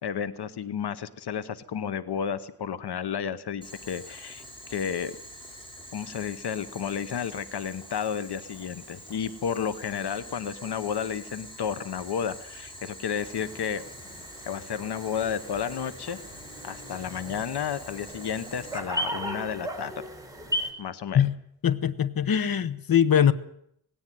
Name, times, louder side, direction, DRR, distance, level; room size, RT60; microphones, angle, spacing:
voice 1, 0.0-5.2 5.9-13.8 14.4-16.2 16.6-19.9 20.8-21.2, left 8 dB, 85° left, 14 dB, 1.0 m, -32 dB
Boiling, 3.6-18.8, equal, 15° left, 5.9 m, -45 dB
sound 1, 13.2-20.7, equal, 10° right, 3.8 m, -37 dB
voice 2, 21.6-23.3, left 9 dB, 60° left, 13 dB, 1.1 m, -22 dB
18.5 x 17.5 x 9.4 m, 0.72 s
wide cardioid pair, 145°, 39 cm